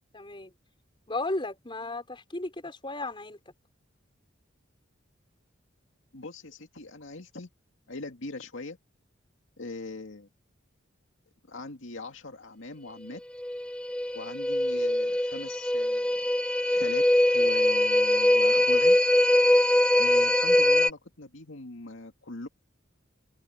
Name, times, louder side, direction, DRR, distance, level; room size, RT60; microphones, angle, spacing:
voice 1, 0.1-0.5 1.1-3.4, left 2 dB, 25° left, 4.6 m, -34 dB
voice 2, 6.1-7.5 7.9-8.8 9.6-10.3 11.5-13.2 14.1-16.3 16.7-19.0 20.0-22.5, left 2 dB, 80° left, 2.3 m, -41 dB
sound 1, 13.4-20.9, left 1 dB, 5° left, 0.8 m, -23 dB
head